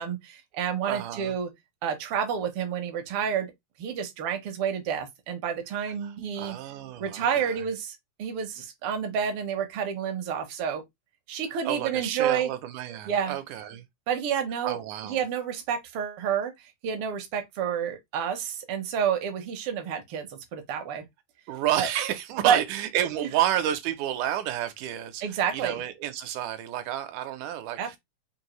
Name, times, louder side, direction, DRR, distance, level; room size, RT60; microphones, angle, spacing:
voice 1, 0.0-1.5 1.8-3.5 3.8-6.6 7.0-10.8 11.3-12.5 13.1-13.3 14.1-14.8 15.1-16.5 16.8-21.1 21.8-21.9 22.4-22.6 23.2-23.3 25.2-25.8 27.8-28.0, right 8 dB, 65° right, 1.4 m, -29 dB
voice 2, 0.9-1.4 5.8-7.7 11.6-13.8 14.6-15.2 21.5-28.0, right 11 dB, 85° right, 2.1 m, -30 dB
5.1 x 2.7 x 3.0 m
omnidirectional pair, 3.5 m